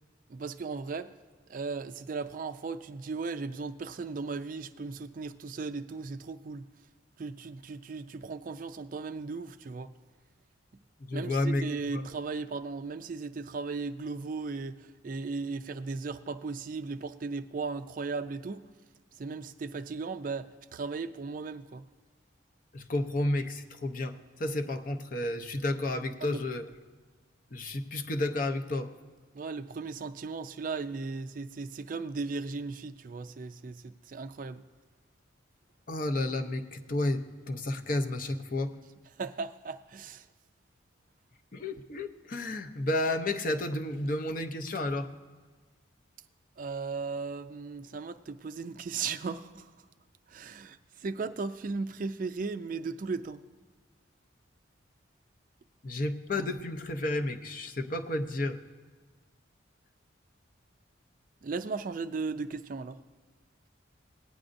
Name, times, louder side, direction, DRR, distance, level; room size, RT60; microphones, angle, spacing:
voice 1, 0.3-1.1 1.5-6.7 7.2-9.9 11.1-18.7 19.2-21.8 26.2-26.4 29.3-34.6 39.2-40.2 46.6-49.7 50.3-53.4 61.4-63.0, right 4 dB, 40° right, 0.3 m, -36 dB
voice 2, 11.0-12.0 22.7-24.1 24.4-26.6 27.5-28.9 35.9-38.7 41.5-45.1 55.8-58.6, left 1 dB, 45° left, 0.6 m, -31 dB
18.0 x 9.7 x 2.6 m
head